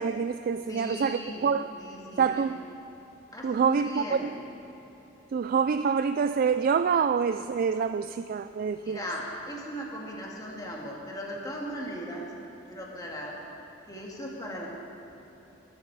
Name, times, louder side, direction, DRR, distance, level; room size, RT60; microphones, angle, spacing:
voice 1, 0.0-1.7 2.2-2.6 3.4-4.2 5.3-9.0, right 6 dB, 50° right, 11 dB, 0.3 m, -26 dB
voice 2, 0.7-1.5 1.8-2.5 3.3-4.2 8.8-12.3 12.7-13.4 13.9-14.7, equal, 20° left, -3 dB, 2.1 m, -38 dB
20.0 x 12.5 x 4.8 m, 3.0 s
head